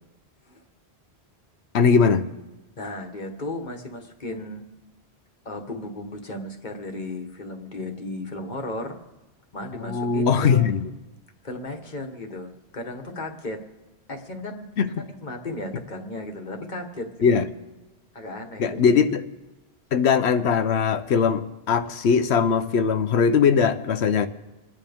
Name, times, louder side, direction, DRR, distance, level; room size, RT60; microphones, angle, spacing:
voice 1, 1.7-2.3 9.8-10.9 14.8-15.1 17.2-17.5 18.6-19.2 19.9-24.3, left 6 dB, 85° left, 10 dB, 1.0 m, -20 dB
voice 2, 2.8-4.6 5.4-9.0 9.5-10.7 11.4-13.6 14.1-14.7 14.9-17.4 18.1-18.8, left 2 dB, 45° left, 4 dB, 1.5 m, -35 dB
28.0 x 10.0 x 3.6 m, 1.1 s
omnidirectional pair, 1.1 m